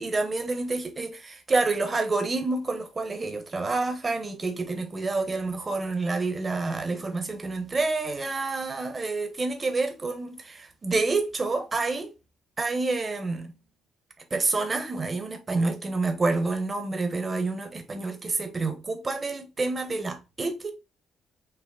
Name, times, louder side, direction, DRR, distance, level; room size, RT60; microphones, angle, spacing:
voice 1, 0.0-12.1 12.6-13.5 14.3-20.7, right 3 dB, 30° right, 1.1 m, -28 dB
5.8 x 2.1 x 3.8 m
cardioid pair, 90°, 0 cm